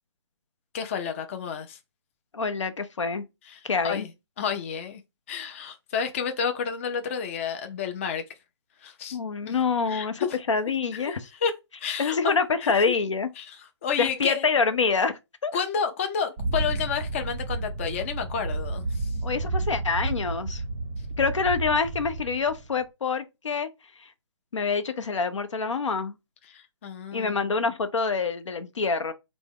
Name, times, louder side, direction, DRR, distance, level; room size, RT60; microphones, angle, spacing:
voice 1, 0.7-1.8 3.5-4.1 4.4-5.0 5.3-8.2 8.8-9.2 9.5-9.6 9.9-10.4 10.9-11.1 11.4-11.5 11.8-12.3 12.6-12.9 13.4-13.6 13.8-14.5 15.5-19.1 26.5-27.4, left 7 dB, 25° left, 0.3 m, -30 dB
voice 2, 2.3-3.2 3.7-4.1 9.1-11.3 12.0-13.3 14.0-15.5 19.2-20.6 21.2-23.7 24.0-24.1 24.5-26.2 27.1-29.1, left 5 dB, 90° left, 0.6 m, -26 dB
sound 1, 16.4-22.7, right 2 dB, 25° right, 0.5 m, -31 dB
3.4 x 2.0 x 3.5 m
hypercardioid pair, 150°, 15 cm